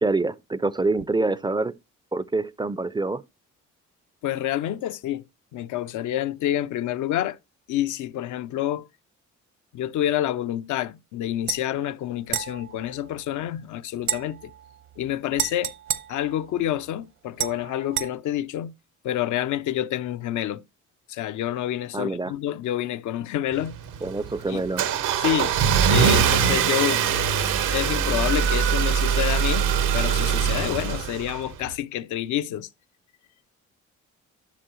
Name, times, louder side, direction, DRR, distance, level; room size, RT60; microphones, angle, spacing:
voice 1, 0.0-1.7 2.1-3.2 21.9-22.3 24.0-24.9, right 3 dB, 15° right, 0.4 m, -26 dB
voice 2, 4.2-5.2 5.5-7.4 7.7-8.8 9.7-14.5 15.0-15.7 16.1-18.7 19.0-20.6 21.1-23.8 24.5-24.6 25.2-25.6 25.9-27.0 27.6-29.7 29.9-32.7, left 12 dB, 80° left, 0.6 m, -28 dB
sound 1, 11.5-11.6 12.3-13.6 14.0-16.9 17.4-18.1, right 10 dB, 70° right, 0.9 m, -32 dB
Car / Engine starting, 23.5-31.7, right 7 dB, 90° right, 1.1 m, -22 dB
11.5 x 6.0 x 3.0 m
cardioid pair, 90°, 30 cm